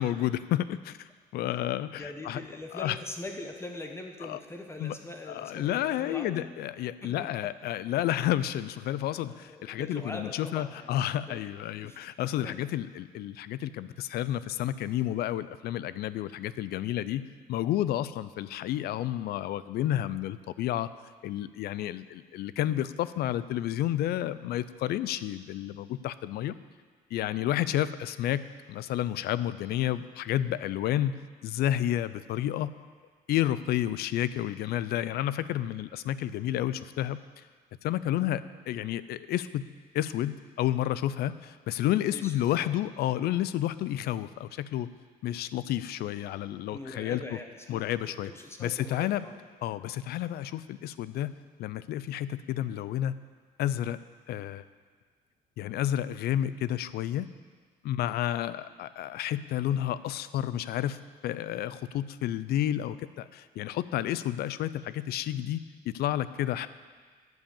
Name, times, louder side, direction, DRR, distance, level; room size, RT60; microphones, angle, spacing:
voice 1, 0.0-2.4 2.7-3.0 4.2-4.4 4.8-5.0 5.3-20.9 21.2-26.5 27.1-31.2 31.4-32.7 33.3-37.2 37.8-39.7 39.9-44.9 45.2-47.2 47.7-48.3 48.6-49.3 49.6-53.1 53.6-54.0 54.3-54.6 55.6-57.3 57.8-61.0 61.2-65.6 65.9-66.7, left 12 dB, 70° left, 15 dB, 0.5 m, -30 dB
voice 2, 2.0-6.5 7.0-7.3 9.1-11.4 11.8-12.0 12.4-12.5 42.1-42.7 46.7-47.8 48.2-49.4, left 2 dB, 15° left, 3 dB, 1.1 m, -42 dB
9.2 x 7.5 x 7.2 m, 1.5 s
cardioid pair, 110°, 17 cm